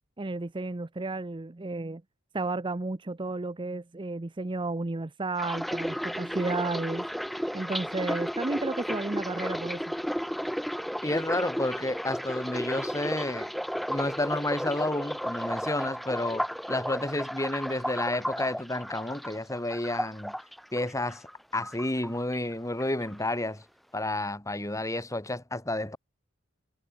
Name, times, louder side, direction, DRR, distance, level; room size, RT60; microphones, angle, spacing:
voice 1, 0.2-2.0 2.3-7.1 7.5-9.8, right 2 dB, 25° right, 0.6 m, -32 dB
sound 1, 5.4-21.3 21.6-22.5 22.8-23.2, equal, ahead, 1.2 m, -33 dB
voice 2, 11.0-13.5 13.9-20.3 20.7-21.3 21.5-23.6 23.9-26.0, left 1 dB, 15° left, 2.5 m, -31 dB
head